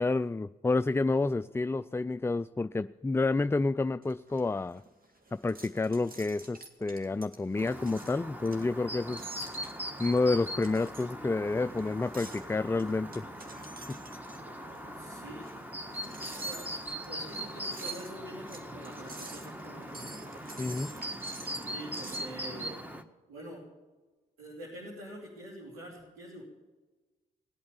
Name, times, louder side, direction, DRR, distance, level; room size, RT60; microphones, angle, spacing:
voice 1, 0.0-4.8 5.3-9.3 10.0-13.3 13.9-14.0 20.6-20.9, left 3 dB, 10° left, 13 dB, 0.4 m, -29 dB
sound 1, 4.0-22.3, right 2 dB, 45° right, 2.2 m, -49 dB
Chirp tweet, 7.6-23.0, equal, 10° right, 1.5 m, -41 dB
voice 2, 14.6-15.6 15.9-16.6 17.0-20.2 21.6-22.8 23.3-23.6 24.4-26.4, right 1 dB, 90° right, -6 dB, 3.2 m, -46 dB
19.0 x 8.7 x 7.2 m, 1.2 s
hypercardioid pair, 40°, 20 cm